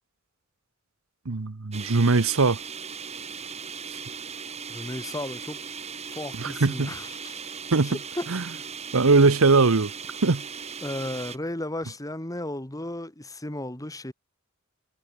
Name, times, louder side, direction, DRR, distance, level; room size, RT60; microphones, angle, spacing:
voice 1, 1.3-2.6 6.3-6.9 7.7-8.0 8.3-8.4 8.9-9.9 10.2-10.4, right 3 dB, 90° right, 1.0 m, -20 dB
sound 1, 1.7-11.4, right 6 dB, 30° right, 2.4 m, -38 dB
voice 2, 4.7-5.6 6.1-7.5 7.8-8.3 10.8-14.1, left 1 dB, 15° left, 2.3 m, -34 dB
head